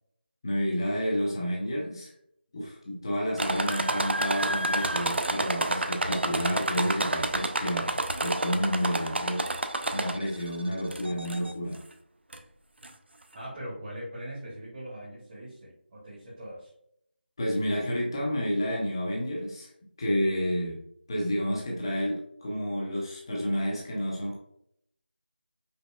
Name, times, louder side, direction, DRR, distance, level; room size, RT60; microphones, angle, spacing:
voice 1, 0.4-2.1 2.5-9.4 9.9-11.8 17.4-19.7 20.0-20.8 21.1-24.4, equal, 25° left, -3 dB, 0.6 m, -30 dB
sound 1, 3.4-10.4 10.9-11.5 12.3-12.4 12.8-12.9, right 2 dB, 80° right, 0.4 m, -29 dB
voice 2, 13.3-16.7, equal, 20° right, -9 dB, 0.9 m, -41 dB
5.2 x 2.1 x 2.2 m, 0.72 s
figure-of-eight pair, 170°, 6 cm